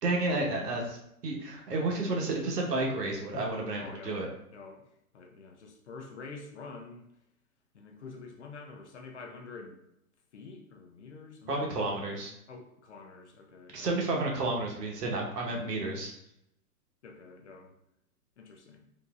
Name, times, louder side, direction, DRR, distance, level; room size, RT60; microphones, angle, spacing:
voice 1, 0.0-1.0 1.2-4.3 11.5-12.3 13.7-16.1, right 2 dB, 90° right, 0 dB, 1.2 m, -31 dB
voice 2, 3.3-4.3 4.5-4.9 5.1-7.1 7.7-9.8 10.3-11.8 12.5-14.0 17.0-17.7 18.4-18.9, left 4 dB, 50° left, 2 dB, 0.5 m, -47 dB
4.0 x 2.7 x 2.3 m, 0.79 s
hypercardioid pair, 175°, 46 cm